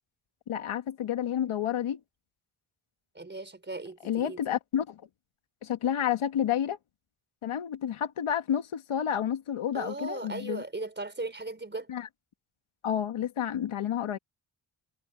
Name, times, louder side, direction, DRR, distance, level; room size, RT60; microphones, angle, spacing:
voice 1, 0.5-2.0 4.0-5.0 5.6-6.8 7.4-10.6 11.9-12.1 12.8-14.2, left 9 dB, 80° left, 1.6 m, -30 dB
voice 2, 3.1-4.4 9.7-11.9, right 2 dB, 20° right, 4.8 m, -37 dB
wide cardioid pair, 110°, 49 cm